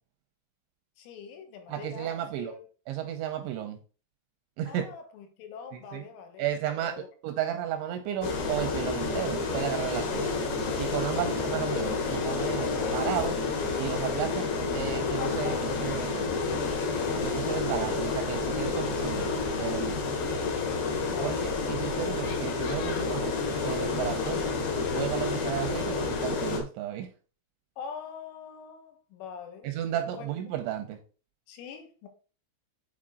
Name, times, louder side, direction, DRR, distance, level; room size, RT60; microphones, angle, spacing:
voice 1, 1.0-2.7 4.7-7.1 10.3-10.6 11.2-11.3 20.4-21.6 27.8-30.3 31.5-32.1, left 6 dB, 80° left, 3.5 m, -44 dB
voice 2, 1.7-2.5 2.9-3.8 4.6-4.8 5.7-6.0 6.4-10.3 10.8-13.4 13.8-16.3 17.2-20.1 21.2-21.4 21.7-24.4 24.9-27.1 29.6-31.0, right 11 dB, 85° right, 2.8 m, -33 dB
sound 1, 8.2-26.6, left 4 dB, 65° left, 3.5 m, -29 dB
8.6 x 4.5 x 3.8 m
omnidirectional pair, 5.9 m